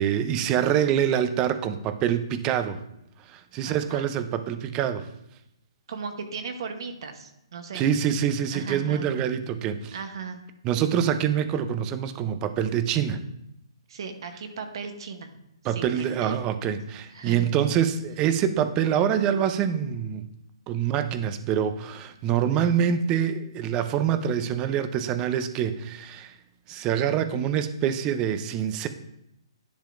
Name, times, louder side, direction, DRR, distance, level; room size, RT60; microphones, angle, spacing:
voice 1, 0.0-2.8 3.3-5.1 7.7-10.0 10.6-13.2 15.6-20.2 20.7-26.3 26.7-28.9, right 9 dB, 25° right, 11 dB, 0.5 m, -25 dB
voice 2, 3.6-4.1 5.9-7.9 8.5-9.1 9.9-10.5 13.9-15.3 15.7-16.4 17.1-17.5, right 5 dB, 60° right, 6 dB, 0.9 m, -36 dB
10.5 x 5.6 x 2.5 m, 0.80 s
hypercardioid pair, 140°, 3 cm